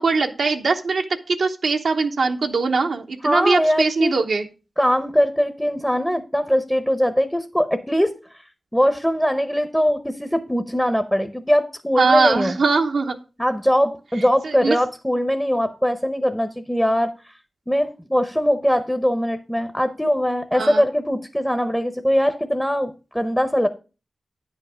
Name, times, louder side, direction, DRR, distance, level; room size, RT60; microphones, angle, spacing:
voice 1, 0.0-4.5 12.0-13.1 14.4-14.8 20.5-20.9, right 4 dB, 80° right, 3 dB, 0.9 m, -21 dB
voice 2, 3.2-4.2 4.8-8.1 8.7-12.6 13.4-17.3 17.7-23.7, equal, 5° left, 8 dB, 0.8 m, -21 dB
9.8 x 5.6 x 4.9 m, 0.32 s
wide cardioid pair, 85°, 0 cm